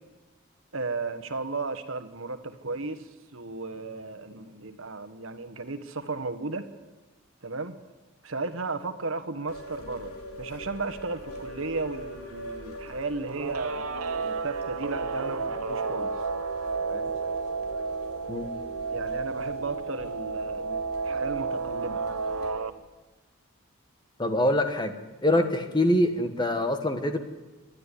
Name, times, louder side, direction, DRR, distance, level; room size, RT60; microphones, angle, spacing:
voice 1, 0.7-6.6 7.4-7.8 8.2-10.1 10.4-13.9 14.2-16.1 16.9-17.1 18.9-22.0 25.3-25.4, right 3 dB, 65° right, 8 dB, 1.4 m, -34 dB
sound 1, 9.5-22.5, equal, 90° left, 3.5 m, -42 dB
Guitar, 13.3-22.7, right 4 dB, 80° right, 1.0 m, -32 dB
voice 2, 24.2-25.0 25.2-27.2, left 1 dB, 20° left, 7 dB, 1.4 m, -24 dB
27.0 x 11.0 x 9.9 m, 1.2 s
head